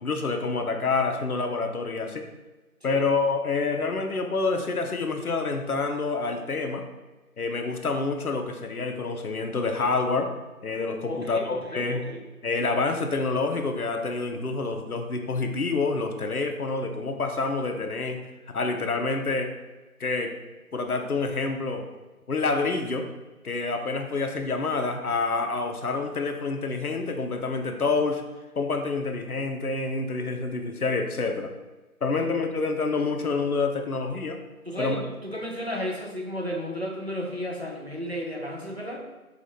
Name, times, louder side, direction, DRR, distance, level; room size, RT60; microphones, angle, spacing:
voice 1, 0.0-2.2 2.8-6.8 7.4-10.3 10.6-12.0 12.4-18.2 18.5-19.5 20.0-20.3 20.7-21.8 22.3-23.1 23.4-28.2 28.6-31.5 32.0-34.4 34.8-35.0, left 3 dB, 70° left, 5 dB, 0.7 m, -27 dB
voice 2, 11.1-12.2 34.6-39.1, equal, 45° right, 0 dB, 0.6 m, -33 dB
5.1 x 2.4 x 4.2 m, 1.2 s
figure-of-eight pair, 175°, 45 cm